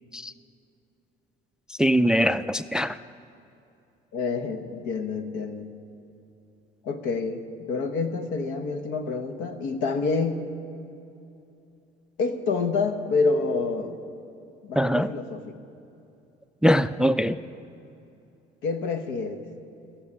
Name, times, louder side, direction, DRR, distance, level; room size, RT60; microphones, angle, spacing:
voice 1, 1.7-3.0 14.8-15.1 16.6-17.4, equal, 5° right, 0.3 m, -22 dB
voice 2, 4.1-5.7 6.8-10.5 12.2-14.0 14.6-15.5 18.6-19.4, left 4 dB, 75° left, 1.1 m, -28 dB
15.0 x 7.3 x 9.7 m
supercardioid pair, 75°, 20 cm